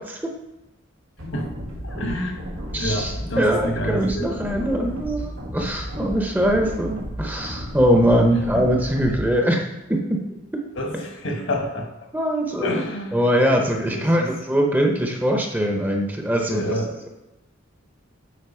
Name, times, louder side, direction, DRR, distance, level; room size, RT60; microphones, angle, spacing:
sound 1, 1.2-9.2, equal, 90° right, 1.8 m, -33 dB
voice 1, 1.8-2.5 2.7-4.4 10.7-11.9 12.6-13.2 13.9-14.3 16.5-16.9, equal, 70° left, 3 dB, 1.3 m, -28 dB
voice 2, 2.7-9.6 9.9-10.2 12.1-12.8 13.1-17.1, equal, 10° right, 1 dB, 0.7 m, -22 dB
8.3 x 4.6 x 4.4 m, 0.99 s
head